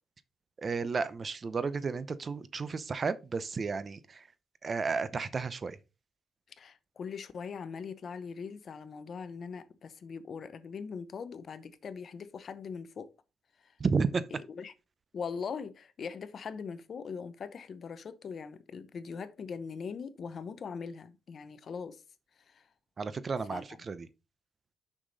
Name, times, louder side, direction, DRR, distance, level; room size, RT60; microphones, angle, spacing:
voice 1, 0.6-4.3 4.6-5.8 13.8-14.2 23.0-24.1, right 4 dB, 40° right, 0.7 m, -32 dB
voice 2, 6.6-13.1 13.6-13.7 14.1-14.7 15.1-22.0 22.5-22.6 23.5-23.8, left 6 dB, 50° left, 0.8 m, -41 dB
6.3 x 5.9 x 3.9 m
cardioid pair, 90°, 0 cm